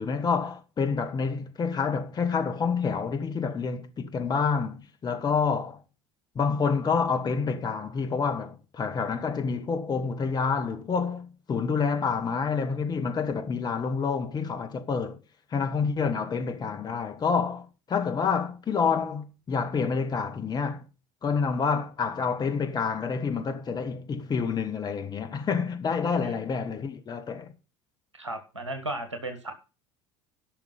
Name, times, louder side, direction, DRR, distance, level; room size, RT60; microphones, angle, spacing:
voice 1, 0.0-5.8 6.3-15.2 15.5-20.8 21.2-27.5, left 5 dB, 25° left, 1.6 m, -28 dB
voice 2, 28.1-29.5, right 1 dB, 80° right, 1.8 m, -35 dB
14.0 x 6.0 x 5.4 m
figure-of-eight pair, 65°, 15 cm